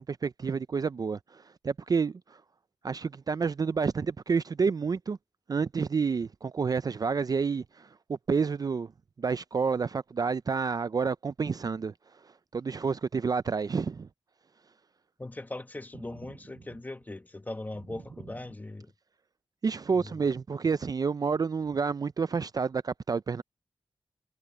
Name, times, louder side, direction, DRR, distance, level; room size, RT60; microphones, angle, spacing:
voice 1, 0.1-2.1 2.8-5.2 5.5-8.9 9.2-11.9 12.5-14.1 19.6-23.4, right 5 dB, 40° right, 0.4 m, -29 dB
voice 2, 15.2-18.9 20.0-20.1, left 2 dB, 15° left, 1.1 m, -40 dB
wide cardioid pair, 100°, 10 cm